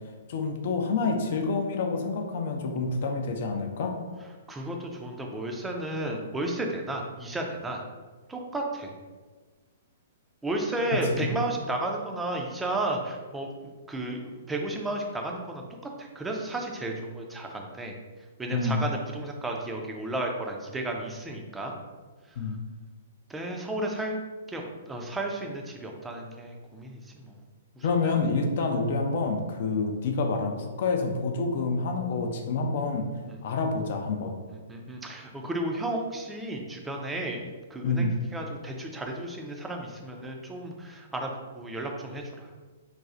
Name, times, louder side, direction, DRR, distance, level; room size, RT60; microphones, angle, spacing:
voice 1, 0.3-4.0 10.9-11.3 18.5-18.8 22.4-22.6 27.8-33.1 33.4-34.4 37.8-38.2, left 3 dB, 50° left, 3 dB, 0.4 m, -28 dB
voice 2, 4.5-7.8 8.3-8.9 10.4-13.5 13.9-15.6 16.0-17.9 18.4-21.7 23.3-24.2 24.5-27.3 27.8-28.2 33.3-33.4 34.5-42.5, right 1 dB, 10° right, 1 dB, 0.4 m, -33 dB
4.0 x 2.3 x 2.4 m, 1.4 s
figure-of-eight pair, 115°, 0 cm